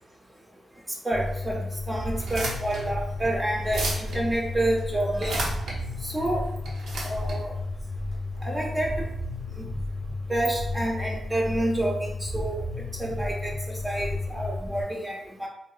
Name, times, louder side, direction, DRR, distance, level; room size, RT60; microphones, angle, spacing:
voice 1, 1.0-5.4 6.0-6.5 7.0-7.5 8.4-9.1 9.6-9.7 10.3-12.6 13.0-15.5, right 1 dB, 20° right, -1 dB, 0.5 m, -29 dB
sound 1, 1.1-14.8, left 2 dB, 50° left, 0.4 m, -33 dB
sound 2, 2.1-8.6, right 1 dB, 85° right, 0.6 m, -35 dB
2.8 x 2.0 x 2.3 m, 0.77 s
cardioid pair, 60°, 0 cm